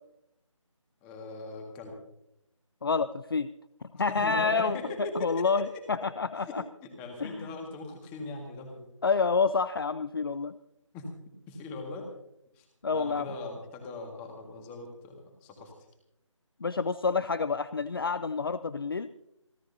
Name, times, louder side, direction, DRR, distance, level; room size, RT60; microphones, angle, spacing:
voice 1, 1.0-2.0 3.9-5.8 6.5-8.9 10.9-11.1 11.5-12.1 12.5-12.7 12.9-15.7, left 2 dB, 10° left, 3 dB, 1.8 m, -40 dB
voice 2, 2.8-3.5 3.9-4.8 5.2-6.6 7.2-7.5 9.0-10.5 12.8-13.3 16.6-19.1, left 4 dB, 45° left, 14 dB, 0.5 m, -28 dB
28.0 x 13.0 x 2.7 m, 0.80 s
figure-of-eight pair, 160°, 17 cm